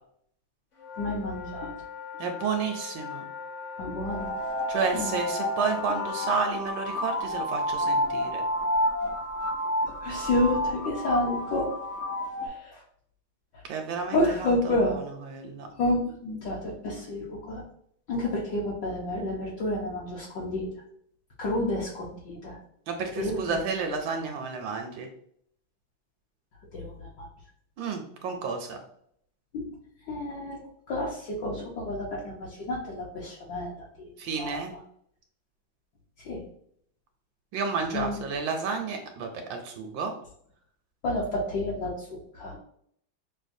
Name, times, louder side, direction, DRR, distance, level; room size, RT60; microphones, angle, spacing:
sound 1, 0.8-6.4, left 7 dB, 50° left, 0.9 m, -39 dB
voice 1, 1.0-1.7 3.8-4.3 4.9-5.2 9.8-11.7 12.4-12.8 13.5-13.6 14.1-15.0 15.8-17.6 18.1-20.7 21.4-22.6 23.2-23.6 26.7-27.3 29.5-29.7 30.0-30.6 30.9-34.1 34.4-34.6 36.2-36.4 37.9-38.2 41.0-42.6, left 1 dB, 65° left, -5 dB, 1.3 m, -30 dB
voice 2, 2.2-3.3 4.7-8.4 13.7-15.7 22.9-25.1 27.8-28.8 34.2-34.7 37.5-40.1, right 5 dB, 75° right, 4 dB, 1.2 m, -31 dB
sound 2, 4.1-12.5, equal, 85° left, 0.6 m, -30 dB
6.2 x 2.2 x 2.5 m, 0.66 s
omnidirectional pair, 2.3 m